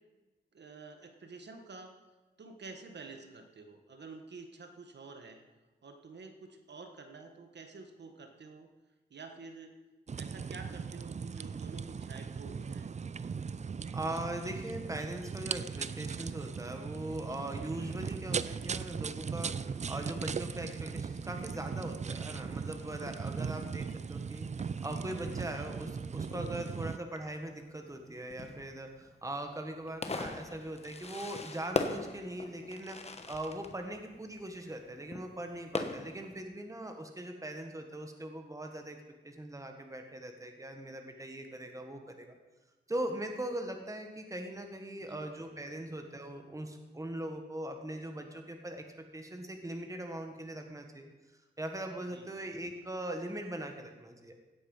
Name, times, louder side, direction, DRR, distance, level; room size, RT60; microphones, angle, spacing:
voice 1, 0.5-1.9 2.4-5.4 5.8-8.7 9.1-9.8 10.2-12.9 45.0-45.3 52.1-52.3, right 4 dB, 70° right, 5 dB, 1.4 m, -49 dB
sound 1, 10.1-27.0, right 6 dB, 40° right, 0.4 m, -38 dB
voice 2, 13.9-33.0 33.3-39.0 39.2-42.3 42.9-51.1 51.6-54.3, right 1 dB, 15° right, 4 dB, 1.5 m, -40 dB
Fireworks, 21.4-36.4, left 3 dB, 35° left, 1.1 m, -43 dB
16.5 x 8.4 x 5.6 m, 1.2 s
wide cardioid pair, 110°, 19 cm